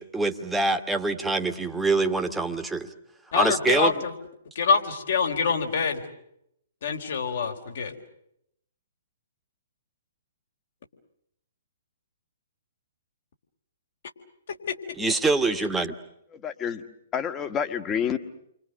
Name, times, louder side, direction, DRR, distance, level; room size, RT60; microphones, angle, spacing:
voice 1, 0.0-2.9 3.3-3.9 15.0-15.9, right 3 dB, 5° right, 5 dB, 1.6 m, -25 dB
voice 2, 3.3-4.1 4.6-6.0 6.8-7.9 14.7-14.8, left 5 dB, 60° left, 3 dB, 3.9 m, -25 dB
voice 3, 16.3-16.8 17.1-18.2, left 8 dB, 20° left, 8 dB, 1.6 m, -28 dB
30.0 x 25.0 x 6.5 m, 0.76 s
figure-of-eight pair, 125°, 0 cm